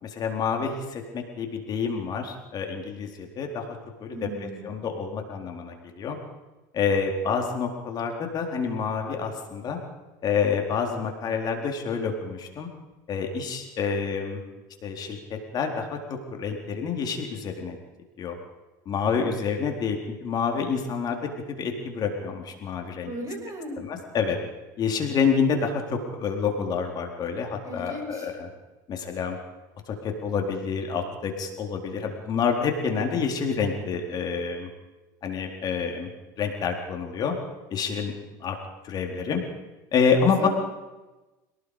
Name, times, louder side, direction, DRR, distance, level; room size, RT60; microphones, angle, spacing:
voice 1, 0.0-6.2 6.7-9.8 10.2-12.7 13.1-14.4 14.8-17.8 18.2-18.4 18.9-21.2 21.5-23.1 23.8-24.4 24.8-28.5 28.9-29.4 29.9-34.7 35.2-36.1 36.4-37.4 37.7-38.1 38.4-38.6 38.8-39.4 39.9-40.5, left 6 dB, 45° left, 3 dB, 4.1 m, -28 dB
voice 2, 4.1-4.7 23.0-23.8 27.6-28.3 40.2-40.5, right 1 dB, 35° right, 3 dB, 6.4 m, -37 dB
27.5 x 19.0 x 5.1 m, 1.1 s
hypercardioid pair, 90°, 10 cm